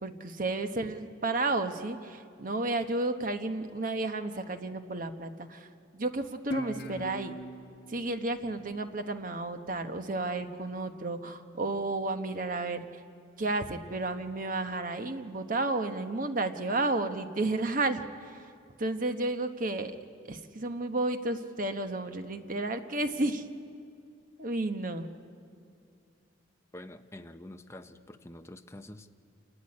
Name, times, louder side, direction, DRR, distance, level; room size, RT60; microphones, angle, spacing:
voice 1, 0.0-7.3 7.9-12.9 13.4-18.5 18.8-20.0 20.3-23.5 24.4-25.1, right 2 dB, 45° right, 7 dB, 1.0 m, -32 dB
Guitar, 6.5-9.7, left 2 dB, 55° left, 1.2 m, -41 dB
voice 2, 26.7-29.1, left 1 dB, 15° left, 7 dB, 0.7 m, -47 dB
28.0 x 13.0 x 9.8 m, 2.4 s
head